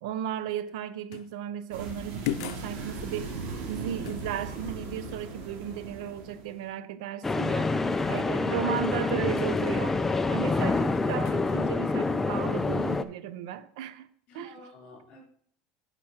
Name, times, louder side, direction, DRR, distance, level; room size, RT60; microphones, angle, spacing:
voice 1, 0.0-3.3 3.7-7.7 8.1-10.0 10.3-14.1 14.3-14.6, right 10 dB, 85° right, 0.7 m, -35 dB
sound 1, 1.1-1.4 2.2-2.7 4.0-4.3 9.4-9.6 11.2-11.5, left 12 dB, 80° left, 0.7 m, -35 dB
sound 2, 1.7-6.7, right 3 dB, 60° right, 2.5 m, -38 dB
sound 3, 7.2-13.0, left 3 dB, 10° left, 0.4 m, -27 dB
voice 2, 7.7-9.2 14.3-15.2, left 4 dB, 45° left, 3.7 m, -48 dB
9.9 x 5.1 x 4.4 m
supercardioid pair, 135°, 3 cm